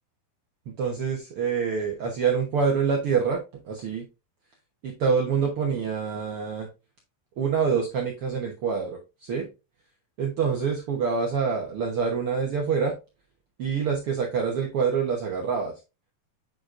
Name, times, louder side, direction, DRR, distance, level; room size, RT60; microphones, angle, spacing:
voice 1, 0.8-4.0 4.8-6.7 7.4-9.4 10.2-12.9 13.6-15.7, right 6 dB, 80° right, 0 dB, 1.2 m, -26 dB
8.7 x 4.7 x 2.5 m, 0.27 s
omnidirectional pair, 4.2 m